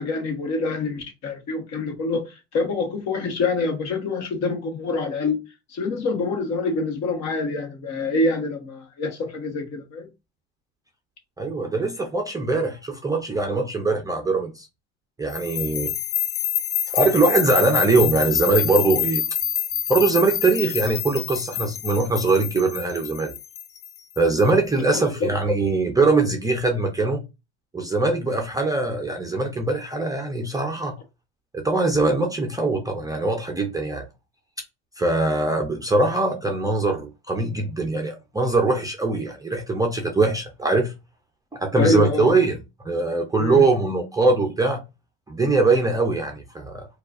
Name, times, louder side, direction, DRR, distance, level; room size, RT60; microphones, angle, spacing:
voice 1, 0.0-5.4 5.7-10.1 24.9-25.3 41.8-42.4 43.4-43.6, left 3 dB, 50° left, 1.2 m, -26 dB
voice 2, 11.4-14.7 15.2-15.9 16.9-19.2 19.9-23.3 24.2-27.2 27.7-31.0 31.5-34.0 35.0-40.9 41.5-42.6 42.8-44.8 45.3-46.9, right 3 dB, 10° right, 0.5 m, -22 dB
sound 1, 15.3-24.4, left 10 dB, 80° left, 0.8 m, -27 dB
4.4 x 2.4 x 2.5 m
supercardioid pair, 115°, 35 cm